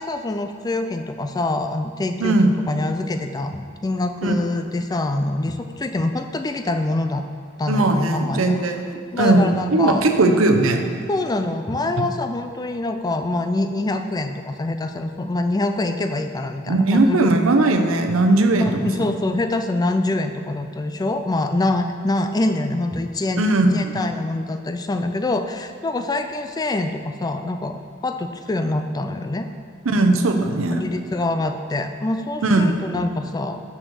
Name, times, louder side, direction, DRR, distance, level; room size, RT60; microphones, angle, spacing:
voice 1, 0.0-7.2 7.6-8.8 9.1-10.0 11.1-17.2 18.6-23.4 23.7-29.5 30.7-33.6, left 2 dB, 20° left, 7 dB, 0.3 m, -25 dB
voice 2, 2.2-2.5 4.2-4.3 7.7-10.8 12.0-12.1 16.7-18.8 23.4-24.0 29.8-30.8 32.4-32.7, right 2 dB, 70° right, 4 dB, 0.8 m, -18 dB
6.4 x 6.3 x 6.1 m, 2.3 s
head